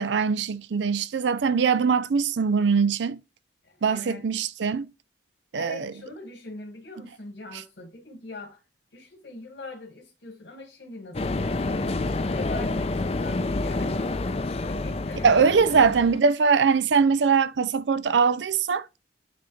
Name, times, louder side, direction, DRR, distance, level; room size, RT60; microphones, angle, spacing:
voice 1, 0.0-3.2 3.8-4.9 5.5-5.9 15.2-18.9, right 5 dB, 90° right, 0.5 m, -22 dB
voice 2, 3.6-4.3 5.5-8.6 8.9-12.0 12.2-14.1 14.6-15.4 15.7-15.9, left 2 dB, 75° left, 1.7 m, -41 dB
sound 1, 11.1-16.2, left 2 dB, 35° left, 0.5 m, -28 dB
9.5 x 3.5 x 3.1 m
head